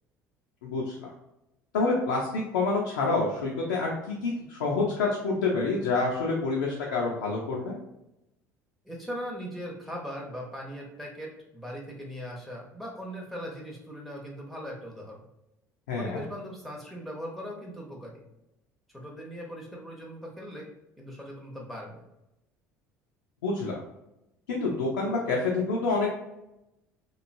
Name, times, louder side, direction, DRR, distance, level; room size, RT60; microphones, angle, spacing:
voice 1, 0.6-1.1 1.7-7.8 15.9-16.2 23.4-23.8 24.5-26.1, left 3 dB, 75° left, -3 dB, 0.5 m, -27 dB
voice 2, 8.8-15.2 16.0-18.2 18.9-20.7 21.0-22.0, equal, ahead, -3 dB, 0.8 m, -39 dB
3.0 x 2.5 x 2.5 m, 0.88 s
figure-of-eight pair, 60°, 10 cm